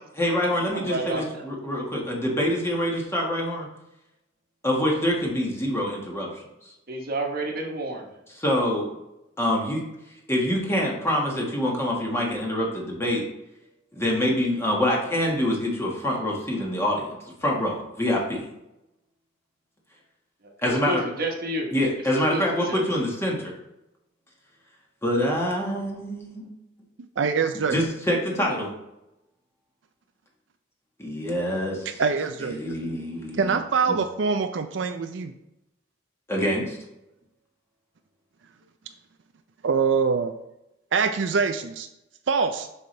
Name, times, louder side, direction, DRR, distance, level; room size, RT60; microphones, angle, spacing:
voice 1, 0.1-3.7 4.6-6.3 6.6-6.7 8.4-8.9 9.4-9.8 10.3-13.2 13.9-18.5 20.6-21.1 21.7-23.5 25.0-26.5 27.7-28.7 31.0-31.9 32.4-33.6 33.9-34.0 36.3-36.8, left 1 dB, 15° left, -2 dB, 1.7 m, -25 dB
voice 2, 0.7-1.4 6.9-8.1 20.6-21.7 22.3-22.8, right 1 dB, 50° right, 1 dB, 1.3 m, -30 dB
voice 3, 27.2-27.8 32.0-32.6 33.4-35.3 39.6-40.3 40.9-41.9 42.3-42.7, right 5 dB, 70° right, 7 dB, 0.5 m, -24 dB
7.3 x 5.7 x 3.3 m, 0.88 s
head